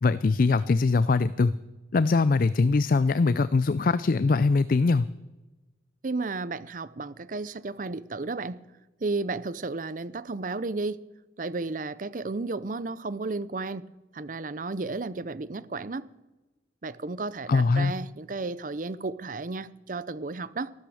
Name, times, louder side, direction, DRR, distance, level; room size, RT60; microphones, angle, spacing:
voice 1, 0.0-1.5 1.9-5.1 17.5-17.9, left 3 dB, 45° left, 16 dB, 0.4 m, -22 dB
voice 2, 6.0-8.6 9.0-11.0 11.4-13.8 14.1-16.1 16.8-20.7, right 3 dB, 45° right, 17 dB, 0.6 m, -33 dB
13.5 x 13.0 x 6.4 m, 1.1 s
head